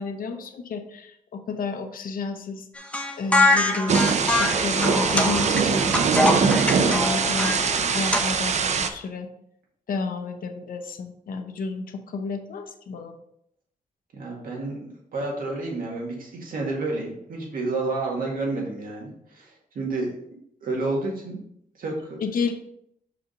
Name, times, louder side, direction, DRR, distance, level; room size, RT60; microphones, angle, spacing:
voice 1, 0.0-2.7 3.2-7.7 7.9-9.3 9.9-13.2 22.2-22.5, left 4 dB, 75° left, 6 dB, 0.8 m, -31 dB
sound 1, 2.8-8.2, left 2 dB, 10° left, 0.7 m, -24 dB
Thunder / Rain, 3.9-8.9, right 5 dB, 50° right, 0.5 m, -22 dB
voice 2, 14.1-21.4 21.8-22.2, right 2 dB, 75° right, -1 dB, 1.9 m, -30 dB
5.9 x 5.0 x 3.8 m, 0.73 s
wide cardioid pair, 130°, 15 cm